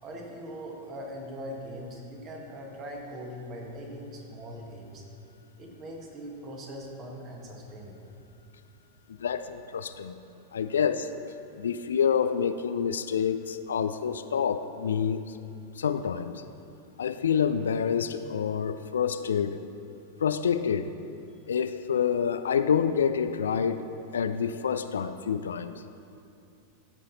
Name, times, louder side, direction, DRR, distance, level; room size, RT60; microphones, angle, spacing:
voice 1, 0.0-5.0 5.6-8.0, equal, 30° right, 0 dB, 1.6 m, -41 dB
voice 2, 9.2-10.2 10.5-11.1 11.6-15.4 15.8-16.4 17.0-19.6 20.2-20.9 21.5-23.9 24.1-25.7, left 7 dB, 65° left, 11 dB, 0.3 m, -27 dB
13.5 x 5.7 x 4.0 m, 2.6 s
figure-of-eight pair, 90°, 0 cm